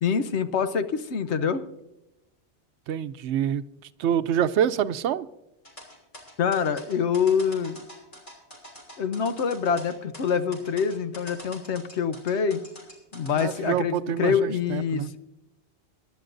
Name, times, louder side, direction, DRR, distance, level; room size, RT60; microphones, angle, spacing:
voice 1, 0.0-1.6 6.4-7.8 9.0-12.6 13.1-15.2, left 6 dB, 80° left, 11 dB, 1.1 m, -25 dB
voice 2, 2.9-3.6 4.0-5.3 13.3-15.1, right 9 dB, 90° right, 14 dB, 0.9 m, -26 dB
sound 1, 5.6-13.6, equal, 50° left, 3.8 m, -45 dB
24.0 x 11.0 x 2.6 m, 0.91 s
omnidirectional pair, 1.1 m